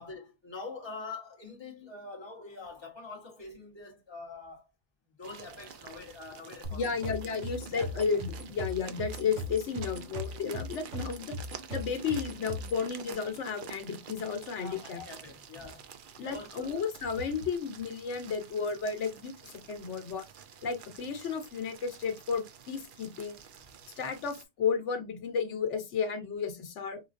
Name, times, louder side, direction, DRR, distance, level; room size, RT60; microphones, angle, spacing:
voice 1, 0.0-4.7 5.2-7.0 7.8-8.1 14.6-15.9 16.2-16.7, left 3 dB, 25° left, 1.1 m, -45 dB
sound 1, 5.2-24.4, right 7 dB, 60° right, 0.6 m, -50 dB
sound 2, 6.6-12.8, left 1 dB, 90° right, 1.8 m, -39 dB
voice 2, 6.7-11.4 11.7-15.1 16.2-20.2 20.6-23.4 24.0-27.0, left 6 dB, 80° left, 1.2 m, -33 dB
4.9 x 2.3 x 2.5 m
omnidirectional pair, 1.2 m